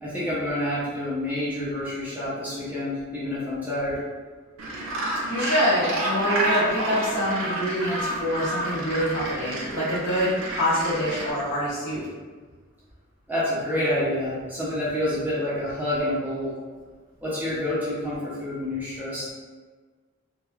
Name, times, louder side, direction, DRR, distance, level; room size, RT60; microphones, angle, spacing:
voice 1, 0.0-4.0 13.3-16.5 17.2-19.3, left 1 dB, 10° right, -9 dB, 0.5 m, -28 dB
Gull seagull, 4.6-11.3, right 1 dB, 80° right, 0.5 m, -29 dB
voice 2, 5.3-12.0, equal, 60° left, -9 dB, 1.2 m, -25 dB
3.0 x 2.2 x 2.3 m, 1.4 s
head